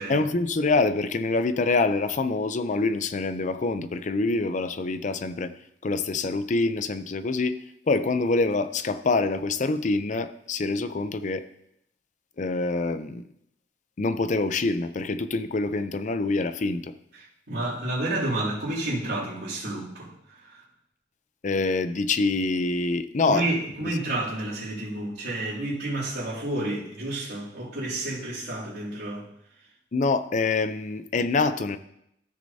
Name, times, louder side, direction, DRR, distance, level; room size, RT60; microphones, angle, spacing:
voice 1, 0.1-5.5 5.8-7.6 7.9-11.4 12.4-13.2 14.0-16.9 21.4-23.5 23.8-24.0 29.9-31.8, left 3 dB, 45° left, 12 dB, 0.5 m, -25 dB
voice 2, 17.2-20.1 20.4-20.5 23.3-29.2, right 1 dB, 75° right, -14 dB, 2.8 m, -30 dB
14.0 x 6.4 x 2.7 m, 0.77 s
head